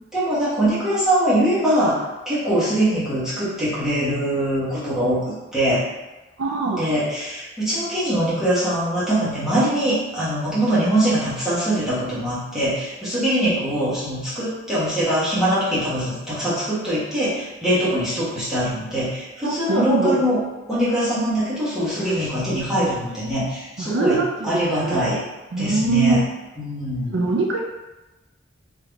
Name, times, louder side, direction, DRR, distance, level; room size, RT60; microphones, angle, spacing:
voice 1, 0.1-5.8 6.8-20.4 20.7-25.2 25.6-26.2 26.6-27.2, right 1 dB, 5° right, -12 dB, 1.4 m, -22 dB
voice 2, 6.4-6.9 19.4-20.2 23.8-25.1 25.5-26.1 27.1-27.6, right 4 dB, 70° right, 0 dB, 0.5 m, -22 dB
3.6 x 2.9 x 3.4 m, 1.1 s
head